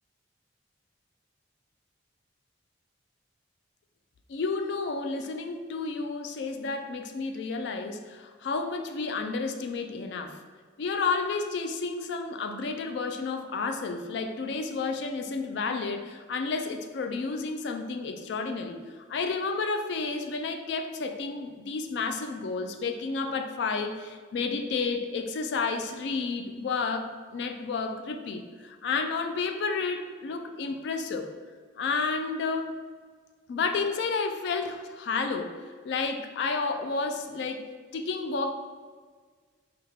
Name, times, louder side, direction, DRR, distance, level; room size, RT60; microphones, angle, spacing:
voice 1, 4.3-10.4 10.8-18.8 19.1-31.3 31.8-32.8 33.5-37.6 37.9-38.5, left 4 dB, 60° left, 5 dB, 0.3 m, -31 dB
3.4 x 2.3 x 3.4 m, 1.5 s
head